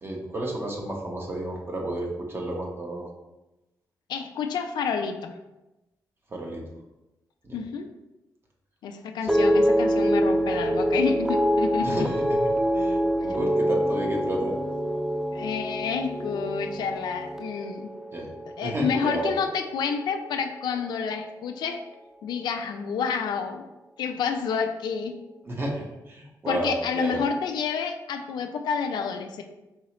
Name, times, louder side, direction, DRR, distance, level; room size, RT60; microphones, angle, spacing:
voice 1, 0.0-3.1 6.3-6.6 7.4-7.6 11.8-12.4 12.7-14.5 18.1-18.3 18.6-19.4 25.4-27.2, right 1 dB, 35° right, -1 dB, 1.0 m, -31 dB
voice 2, 4.1-5.4 7.5-7.9 8.8-12.1 15.3-17.9 18.6-21.8 22.2-23.6 24.0-25.2 26.5-29.4, left 6 dB, 85° left, 6 dB, 0.4 m, -29 dB
sound 1, 9.3-19.6 19.9-20.5, equal, 5° right, 0.3 m, -26 dB
4.7 x 3.1 x 2.9 m, 1.0 s
cardioid pair, 85°, 7 cm